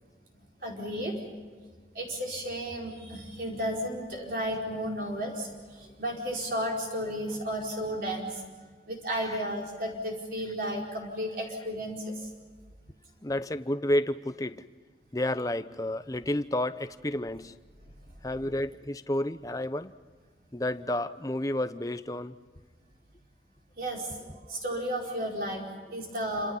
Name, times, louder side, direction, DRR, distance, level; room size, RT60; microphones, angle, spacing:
voice 1, 0.6-1.2 1.9-5.5 5.8-8.4 8.9-12.3 23.8-26.6, equal, 55° right, 4.8 m, -33 dB
voice 2, 13.2-14.6 15.1-17.6 18.2-19.9 20.5-22.4, left 1 dB, 20° left, 0.8 m, -30 dB
29.0 x 26.5 x 5.6 m
head